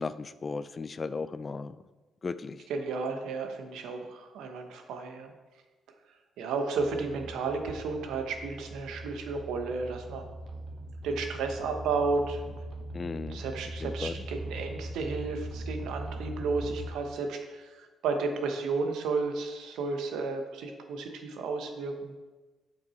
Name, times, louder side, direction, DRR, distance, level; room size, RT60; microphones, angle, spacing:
voice 1, 0.0-1.8 2.2-2.6 12.9-13.4 13.8-14.2, left 4 dB, 35° left, 14 dB, 0.3 m, -35 dB
voice 2, 2.7-5.3 6.4-10.2 11.0-12.5 13.3-22.1, right 4 dB, 85° right, 5 dB, 1.0 m, -33 dB
sound 1, 6.8-16.9, right 1 dB, 60° right, 0.9 m, -40 dB
7.4 x 6.0 x 4.3 m, 1.2 s
cardioid pair, 90°, 0 cm